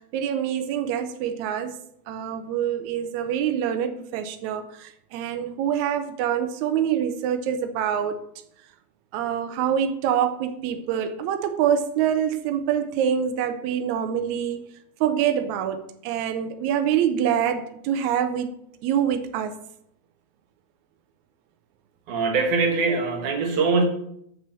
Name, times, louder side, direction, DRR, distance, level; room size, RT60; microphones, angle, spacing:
voice 1, 0.1-1.7 2.1-8.2 9.1-14.6 15.0-18.5 18.8-19.5, right 9 dB, 80° right, 1.6 m, -25 dB
voice 2, 22.1-23.8, right 4 dB, 65° right, 2.6 m, -22 dB
6.9 x 6.4 x 7.3 m
omnidirectional pair, 4.1 m